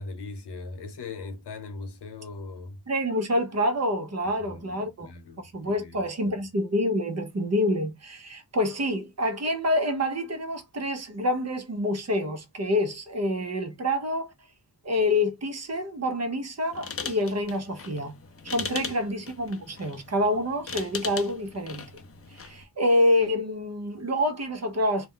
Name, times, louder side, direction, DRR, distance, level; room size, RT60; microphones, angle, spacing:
voice 1, 0.0-2.8 4.2-6.4, left 3 dB, 80° left, 0.9 m, -40 dB
voice 2, 2.9-5.1 5.5-14.3 14.8-18.1 18.5-21.8 22.3-25.1, left 1 dB, 40° right, 0.7 m, -27 dB
sound 1, 16.7-22.6, left 5 dB, 35° left, 0.4 m, -39 dB
2.4 x 2.1 x 3.6 m
wide cardioid pair, 125°, 40 cm